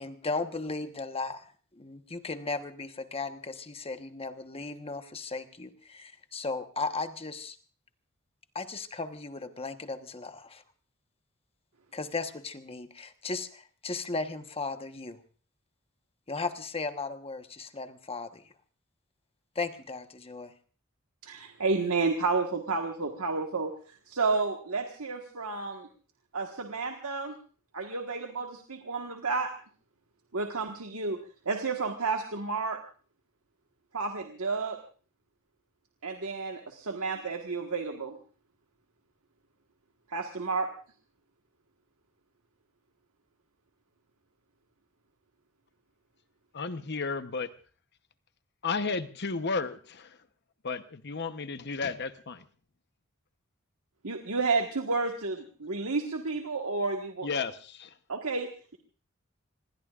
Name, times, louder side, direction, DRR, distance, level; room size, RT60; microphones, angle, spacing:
voice 1, 0.0-1.5 1.7-7.6 8.5-10.6 11.9-15.2 16.3-18.4 19.5-20.5, left 3 dB, 25° left, 8 dB, 1.2 m, -36 dB
voice 2, 21.2-25.9 26.3-27.4 27.7-29.5 30.3-31.2 31.4-32.8 33.9-34.8 36.0-38.2 40.1-40.7 54.0-57.3 58.1-58.8, right 4 dB, 80° right, 3 dB, 1.6 m, -31 dB
voice 3, 46.5-47.5 48.6-50.2 50.6-52.4 57.2-57.9, left 4 dB, 50° left, 10 dB, 1.0 m, -33 dB
26.0 x 21.5 x 2.5 m, 0.40 s
head